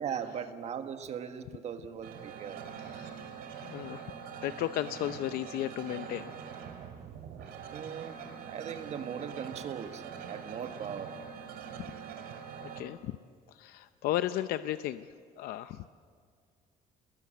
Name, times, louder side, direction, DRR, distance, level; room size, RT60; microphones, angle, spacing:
voice 1, 0.0-2.6 7.7-11.2, right 8 dB, 45° right, 8 dB, 1.4 m, -39 dB
sound 1, 2.0-12.8, right 7 dB, 85° right, 2.7 m, -44 dB
voice 2, 2.8-3.3 3.6-6.3 7.4-7.5 12.6-13.2 13.5-15.1 15.4-15.9, left 13 dB, 75° left, 12 dB, 0.6 m, -35 dB
29.0 x 21.0 x 8.0 m, 2.1 s
cardioid pair, 170°, 16 cm